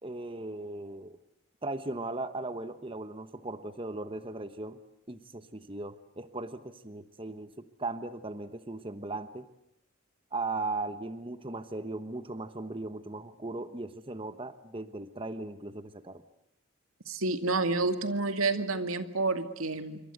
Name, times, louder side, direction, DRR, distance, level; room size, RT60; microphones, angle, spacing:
voice 1, 0.0-1.2 1.6-4.8 5.1-9.5 10.3-16.2, right 2 dB, 25° right, 11 dB, 1.1 m, -38 dB
voice 2, 17.1-20.0, right 3 dB, 85° right, 9 dB, 2.3 m, -29 dB
27.0 x 25.0 x 8.1 m, 0.86 s
head